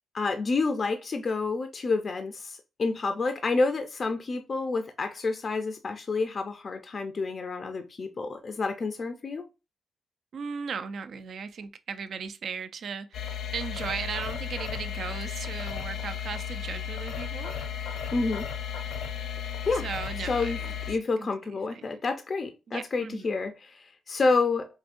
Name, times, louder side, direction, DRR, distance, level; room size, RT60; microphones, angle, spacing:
voice 1, 0.1-9.5 18.1-18.5 19.4-19.8 20.3-20.6 20.9-24.7, left 3 dB, 35° left, 0.4 m, -29 dB
voice 2, 10.3-17.7 19.7-20.7 21.2-21.9 22.7-23.3, right 6 dB, 55° right, 0.4 m, -37 dB
sound 1, 13.1-20.9, left 8 dB, 85° left, 0.8 m, -34 dB
4.9 x 2.6 x 2.5 m
cardioid pair, 140°, 0 cm